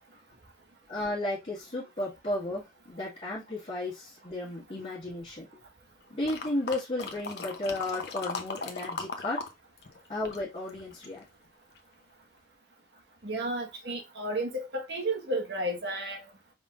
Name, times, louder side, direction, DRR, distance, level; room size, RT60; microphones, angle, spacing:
voice 1, 0.9-5.5 6.1-9.4 10.1-11.2, left 2 dB, 40° left, 1.7 m, -34 dB
sound 1, 6.3-9.5 9.8-11.2 11.8-11.9, left 3 dB, 60° left, 0.8 m, -38 dB
voice 2, 13.2-16.3, right 1 dB, 70° right, 1.4 m, -32 dB
5.2 x 3.6 x 2.4 m
head